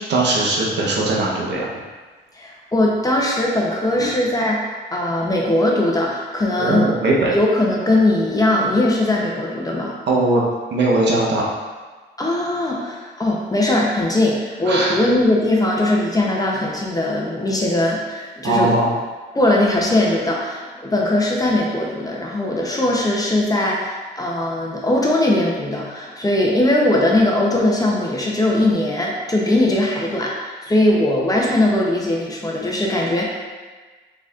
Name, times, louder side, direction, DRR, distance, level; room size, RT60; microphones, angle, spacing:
voice 1, 0.1-1.6 6.6-7.3 10.1-10.4 10.7-11.4 14.6-15.0 18.4-18.9, right 2 dB, 60° right, -4 dB, 1.0 m, -19 dB
voice 2, 2.3-4.6 4.9-6.9 7.3-9.9 12.2-18.8 19.3-33.3, left 1 dB, 20° left, -3 dB, 0.7 m, -20 dB
4.0 x 3.9 x 2.4 m, 1.4 s
cardioid pair, 90°, 20 cm